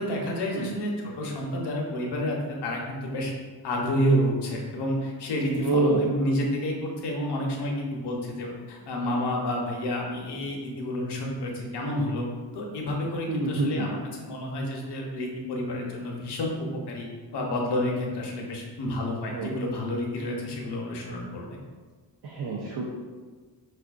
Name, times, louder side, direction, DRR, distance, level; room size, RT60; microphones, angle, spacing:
voice 1, 0.0-3.3 3.6-12.2 12.5-14.0 14.2-17.1 17.3-21.5, left 1 dB, 65° left, -1 dB, 0.8 m, -29 dB
voice 2, 5.5-6.0 13.3-13.9 19.3-19.5 22.2-23.0, right 2 dB, 60° right, -2 dB, 0.5 m, -27 dB
4.4 x 2.4 x 2.4 m, 1.5 s
wide cardioid pair, 145°, 44 cm